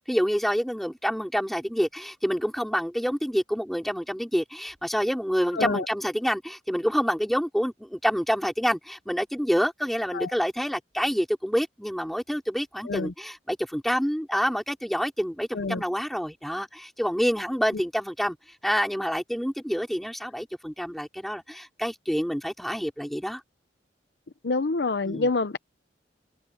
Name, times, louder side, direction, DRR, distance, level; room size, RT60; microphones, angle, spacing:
voice 1, 0.1-18.4 18.6-23.4 25.0-25.3, equal, ahead, 3.7 m, -27 dB
voice 2, 24.4-25.6, left 3 dB, 65° left, 0.7 m, -26 dB
open air
head